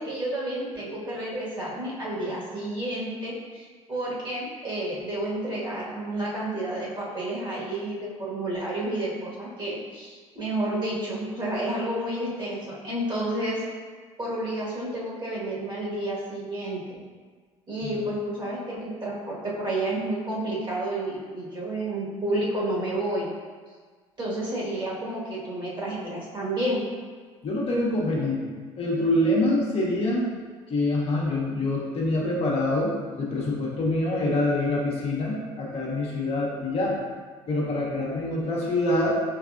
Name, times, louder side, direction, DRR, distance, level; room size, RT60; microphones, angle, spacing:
voice 1, 0.0-13.6 14.2-17.0 17.7-23.3 24.2-26.8, right 1 dB, 30° right, -6 dB, 1.5 m, -30 dB
voice 2, 27.4-28.5 28.8-30.2 30.7-37.0 37.5-39.2, left 1 dB, 40° left, -4 dB, 1.0 m, -25 dB
4.8 x 3.2 x 2.4 m, 1.5 s
hypercardioid pair, 60°, 16 cm